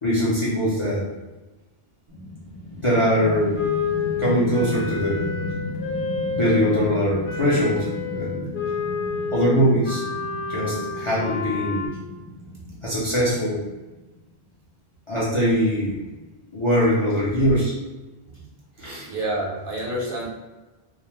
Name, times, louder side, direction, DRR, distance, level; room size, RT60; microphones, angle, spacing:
voice 1, 0.0-1.0 2.7-3.6 4.2-5.4 6.3-8.5 9.3-10.0 10.5-11.9 12.8-13.6 15.1-16.0 16.5-17.8 18.8-19.1, equal, 40° left, -9 dB, 0.5 m, -22 dB
sound 1, 2.1-14.3, left 1 dB, 30° right, 0.4 m, -35 dB
Wind instrument woodwind instrument, 3.5-6.9 7.2-11.9, left 5 dB, 75° left, 0.8 m, -29 dB
voice 2, 19.0-20.3, right 1 dB, 60° right, -5 dB, 0.9 m, -28 dB
2.3 x 2.0 x 3.0 m, 1.1 s
omnidirectional pair, 1.1 m